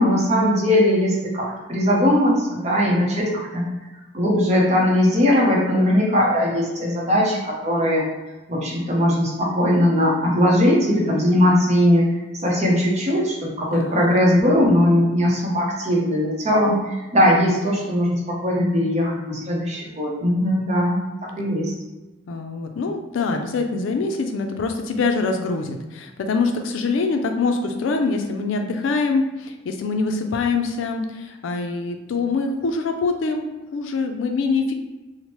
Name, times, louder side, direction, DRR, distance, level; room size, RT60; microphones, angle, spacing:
voice 1, 0.0-3.6 4.1-8.0 8.5-12.0 12.4-21.7, left 1 dB, 35° right, -3 dB, 0.7 m, -19 dB
voice 2, 13.7-14.0 22.3-34.7, left 4 dB, 75° left, 4 dB, 0.4 m, -24 dB
3.0 x 2.0 x 2.9 m, 1.1 s
head